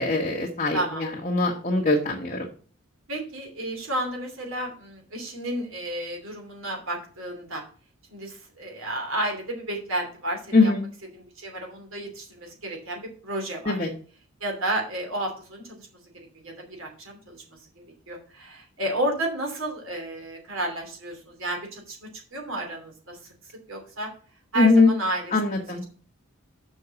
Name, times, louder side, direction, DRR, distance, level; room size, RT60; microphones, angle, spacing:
voice 1, 0.0-2.5 10.5-10.8 13.7-13.9 24.6-24.9 25.3-25.8, left 3 dB, 35° left, -1 dB, 1.3 m, -21 dB
voice 2, 0.7-1.1 3.1-7.6 8.1-10.7 11.1-13.9 14.4-15.9 16.4-17.6 18.1-23.2 23.7-24.1 24.5-25.8, right 1 dB, 65° right, 2 dB, 2.8 m, -32 dB
6.3 x 5.4 x 7.0 m, 0.41 s
head